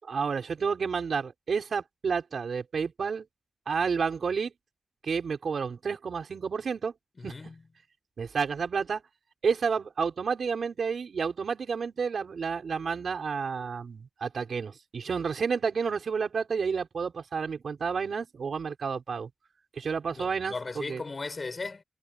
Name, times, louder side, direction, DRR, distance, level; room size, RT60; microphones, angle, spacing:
voice 1, 0.0-3.3 3.7-4.5 5.0-6.9 7.2-7.3 8.2-9.0 9.4-19.3 19.8-21.0, right 5 dB, 75° right, 5.4 m, -30 dB
voice 2, 7.2-7.6 20.1-21.8, left 3 dB, 35° left, 5.8 m, -37 dB
wide cardioid pair, 165°, 0 cm